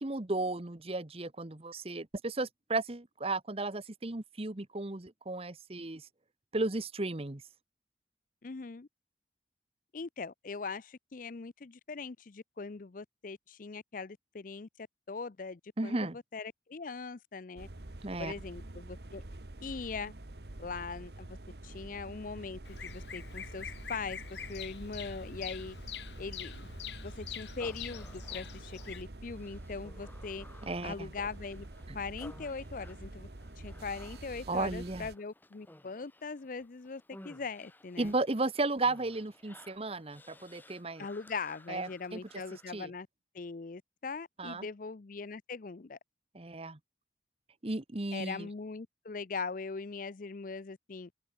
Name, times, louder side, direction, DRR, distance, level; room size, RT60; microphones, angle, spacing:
voice 1, 0.0-6.1 6.5-7.4 15.8-16.2 18.0-18.3 30.6-31.1 34.5-35.1 38.0-41.1 41.7-42.2 42.7-42.9 44.4-44.7 46.3-46.8 47.6-48.5, right 2 dB, 35° right, 1.1 m, -34 dB
voice 2, 8.4-8.9 9.9-14.7 15.1-17.7 18.2-19.2 19.6-20.1 20.6-21.3 21.6-24.2 24.5-25.8 26.2-26.7 27.0-30.5 30.8-31.7 31.9-33.3 33.6-38.1 41.0-43.1 43.3-46.0 48.1-51.1, left 4 dB, 50° left, 0.6 m, -41 dB
sound 1, 17.6-35.1, right 1 dB, 65° right, 1.4 m, -47 dB
Bird vocalization bird call bird song, 22.6-29.0, left 8 dB, 75° left, 1.9 m, -45 dB
Human voice, 27.6-42.7, left 1 dB, 10° left, 1.6 m, -57 dB
open air
head